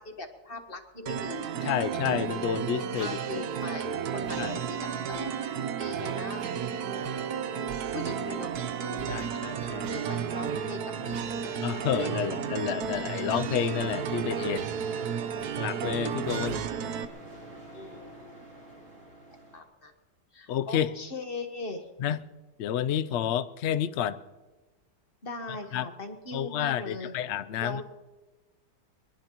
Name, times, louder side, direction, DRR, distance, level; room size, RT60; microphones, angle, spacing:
voice 1, 0.0-1.7 3.0-6.5 6.8-7.4 7.9-9.4 9.9-11.7 12.2-12.3 15.0-15.1 17.7-18.3 19.3-19.9 20.3-21.9 25.2-27.1 27.6-27.8, left 2 dB, 35° left, 6 dB, 1.3 m, -40 dB
sound 1, 1.1-17.1, right 7 dB, 65° right, 1.2 m, -33 dB
voice 2, 1.6-3.4 4.4-4.6 9.1-9.9 11.6-14.7 15.6-16.6 20.5-20.9 22.0-22.2 22.6-24.2 25.7-25.9 26.3-27.8, left 10 dB, 90° left, 12 dB, 0.6 m, -30 dB
sound 2, 3.0-4.0 4.2-5.6 6.0-7.4 7.7-10.8 11.1-12.5 12.8-13.0 13.3-14.3 14.5-15.9 16.2-16.7, right 8 dB, 85° right, 1.5 m, -44 dB
sound 3, 12.7-19.6, right 1 dB, 35° right, 3.3 m, -46 dB
22.5 x 21.5 x 3.0 m, 1.2 s
omnidirectional pair, 1.9 m